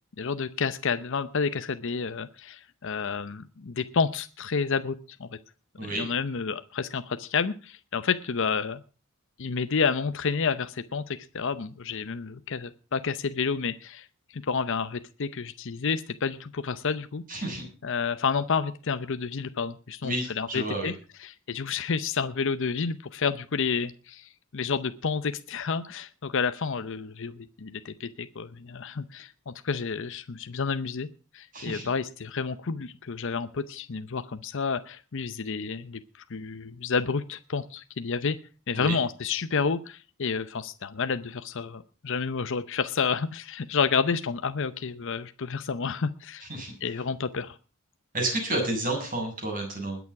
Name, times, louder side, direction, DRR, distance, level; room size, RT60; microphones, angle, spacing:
voice 1, 0.2-5.4 5.9-8.8 9.4-17.4 17.8-20.9 21.2-31.1 31.3-36.0 36.3-38.4 38.7-46.5 46.8-47.6, left 5 dB, 60° left, 11 dB, 0.7 m, -30 dB
voice 2, 17.3-17.7 20.0-20.9 31.5-31.9 38.8-39.0 46.5-46.7 48.1-50.0, right 1 dB, 40° right, 2 dB, 7.2 m, -30 dB
20.5 x 7.1 x 5.8 m, 0.36 s
head